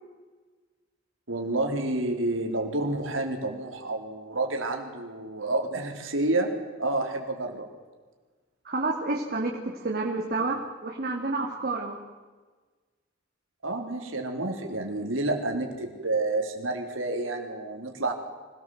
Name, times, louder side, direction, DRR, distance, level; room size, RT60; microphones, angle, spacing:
voice 1, 1.3-6.5 6.8-7.7 13.6-18.1, right 2 dB, 80° right, 3 dB, 3.9 m, -29 dB
voice 2, 8.6-12.0, right 3 dB, 50° right, 0 dB, 2.6 m, -29 dB
25.0 x 18.0 x 8.0 m, 1.4 s
head